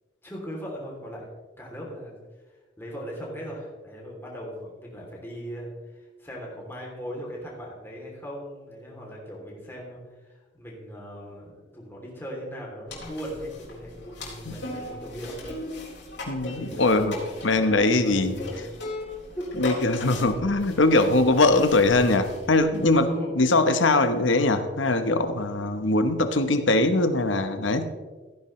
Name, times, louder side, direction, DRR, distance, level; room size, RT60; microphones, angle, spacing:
voice 1, 0.2-1.3 1.6-2.2 2.5-15.4 16.4-18.6 19.4-19.5 20.2-20.3 23.0-23.4, equal, 10° left, -3 dB, 3.0 m, -38 dB
sound 1, 12.9-23.0, left 1 dB, 70° left, 3.7 m, -38 dB
voice 2, 16.3-17.1 17.4-18.4 19.6-23.1 23.4-27.9, left 2 dB, 85° left, 9 dB, 1.0 m, -21 dB
15.5 x 10.0 x 3.2 m, 1.3 s
head